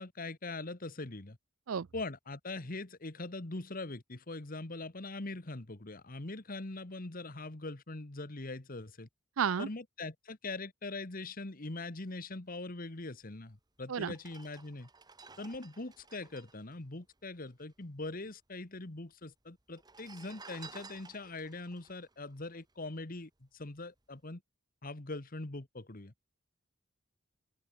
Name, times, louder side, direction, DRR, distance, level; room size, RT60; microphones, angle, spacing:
voice 1, 0.0-1.4 1.9-9.1 9.6-14.9 15.4-24.4 24.8-26.1, left 2 dB, 45° left, 1.5 m, -42 dB
voice 2, 9.4-9.7 13.9-14.1, right 7 dB, 80° right, 0.5 m, -31 dB
sound 1, 13.4-13.5 14.1-17.8 18.0-18.1 18.3-19.0 19.7-23.2 23.6-23.8, right 4 dB, 20° right, 1.9 m, -54 dB
open air
head